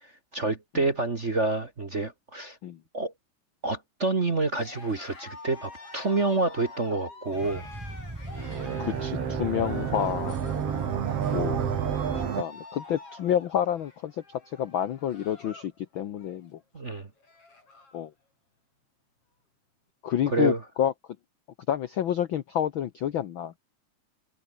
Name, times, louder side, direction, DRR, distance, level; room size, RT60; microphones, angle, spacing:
voice 1, 0.0-2.6 2.9-3.1 3.6-7.7 16.7-17.1 20.3-20.6, right 3 dB, 35° right, 1.2 m, -28 dB
Cheering, 4.5-15.8 16.1-16.5 16.9-17.0 17.2-18.0, left 3 dB, 45° left, 8.0 m, -47 dB
sound 1, 7.3-12.3, right 1 dB, 20° right, 0.5 m, -39 dB
sound 2, 8.3-12.4, right 8 dB, 55° right, 2.6 m, -30 dB
voice 2, 8.8-10.4 11.3-11.7 12.1-16.6 17.9-18.1 20.0-20.9 21.7-23.6, left 10 dB, 80° left, 1.1 m, -29 dB
omnidirectional pair, 3.6 m